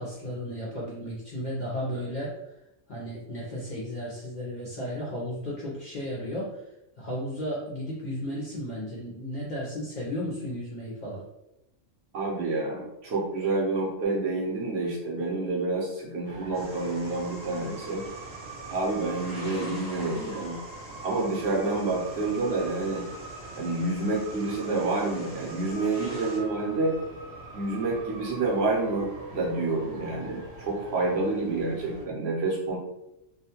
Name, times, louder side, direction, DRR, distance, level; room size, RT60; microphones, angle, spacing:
voice 1, 0.0-2.5 2.9-6.6 7.0-11.2, equal, 55° left, -6 dB, 0.5 m, -34 dB
voice 2, 12.1-18.0 18.7-20.6 21.0-23.1 23.6-27.0 27.5-32.8, right 3 dB, 60° right, -4 dB, 0.9 m, -28 dB
sound 1, 16.2-32.1, right 2 dB, 85° right, 1.0 m, -43 dB
sound 2, 16.5-26.4, equal, 5° right, 0.6 m, -47 dB
2.4 x 2.2 x 2.8 m, 0.89 s
omnidirectional pair, 1.3 m